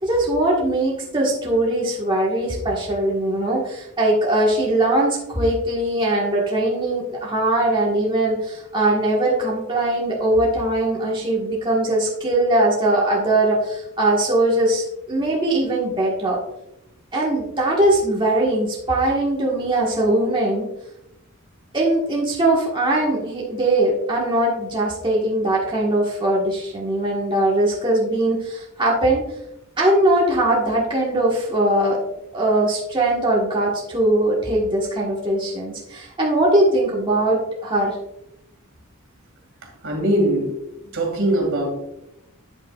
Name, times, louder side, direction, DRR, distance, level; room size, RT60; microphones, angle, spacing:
voice 1, 0.0-16.4 17.1-20.7 21.7-29.2 29.8-32.0 32.3-38.0, right 1 dB, 20° right, -4 dB, 1.5 m, -20 dB
voice 2, 39.8-40.5 40.9-41.7, right 1 dB, 60° right, 1 dB, 2.3 m, -21 dB
8.8 x 8.1 x 2.4 m, 0.86 s
head